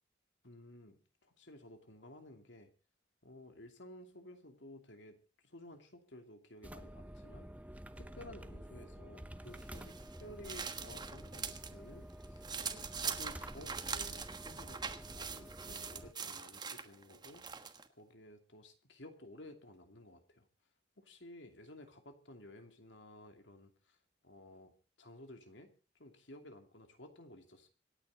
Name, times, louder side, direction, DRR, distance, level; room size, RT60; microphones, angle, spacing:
voice 1, 0.4-2.7 3.2-5.2 5.4-7.5 8.0-17.7 18.0-20.5 21.0-24.0 24.2-27.7, left 1 dB, 70° left, 6 dB, 2.7 m, -55 dB
sound 1, 6.6-16.1, right 1 dB, 10° right, 0.8 m, -50 dB
sound 2, 9.6-11.7 12.1-17.9, right 6 dB, 25° right, 1.3 m, -43 dB
26.5 x 9.7 x 4.0 m, 0.34 s
head